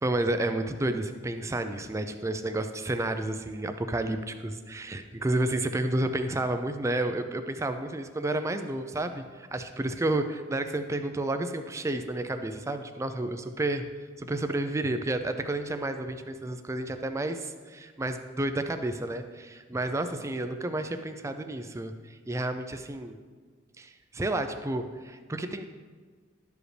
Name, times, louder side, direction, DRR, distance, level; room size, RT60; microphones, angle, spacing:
voice 1, 0.0-13.9 14.2-23.2 23.8-25.7, right 2 dB, 15° right, 8 dB, 0.4 m, -31 dB
11.5 x 5.0 x 3.2 m, 1.5 s
head